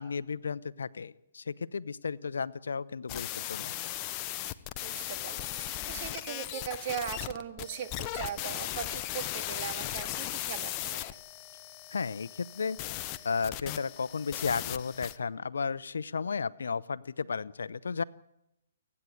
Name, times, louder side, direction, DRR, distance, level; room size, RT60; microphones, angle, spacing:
voice 1, 0.0-3.7 11.9-12.8 13.2-18.0, left 5 dB, 80° left, 18 dB, 0.8 m, -34 dB
sound 1, 3.1-15.2, left 14 dB, 30° left, 0.9 m, -37 dB
voice 2, 4.8-11.2, right 8 dB, 40° right, 8 dB, 2.0 m, -39 dB
29.5 x 9.8 x 9.3 m, 0.86 s
hypercardioid pair, 150°, 0 cm